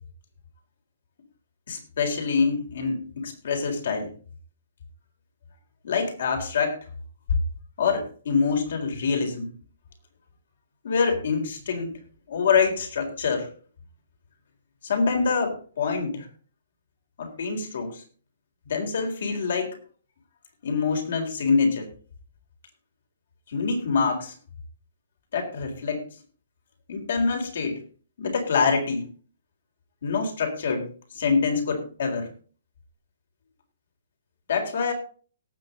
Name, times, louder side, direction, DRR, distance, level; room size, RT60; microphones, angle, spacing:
voice 1, 1.7-4.1 5.8-6.8 7.8-9.5 10.8-11.9 12.3-13.5 14.8-16.3 17.2-18.0 18.7-19.8 20.6-21.9 23.5-24.3 25.3-26.0 26.9-27.8 28.2-29.1 30.0-32.3 34.5-34.9, left 5 dB, 70° left, 3 dB, 4.1 m, -25 dB
18.0 x 7.0 x 4.0 m, 0.40 s
hypercardioid pair, 150°, 0 cm